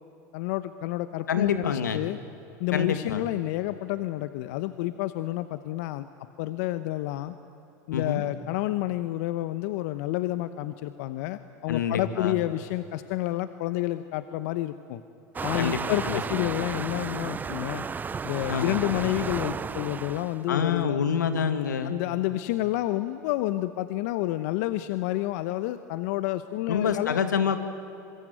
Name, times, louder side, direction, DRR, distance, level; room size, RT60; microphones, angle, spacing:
voice 1, 0.3-2.2 2.6-6.1 6.4-7.3 7.9-15.0 15.4-17.9 18.2-21.0 21.8-27.2, left 16 dB, 65° left, 12 dB, 0.9 m, -29 dB
voice 2, 1.3-2.0 2.7-3.2 7.9-8.2 11.7-12.4 15.6-16.5 18.5-18.9 20.5-22.0 26.7-27.6, left 7 dB, 90° left, 9 dB, 2.0 m, -27 dB
Waves surf, 15.4-20.4, right 5 dB, 20° right, 0.6 m, -33 dB
26.0 x 22.0 x 9.1 m, 2.9 s
hypercardioid pair, 95°, 9 cm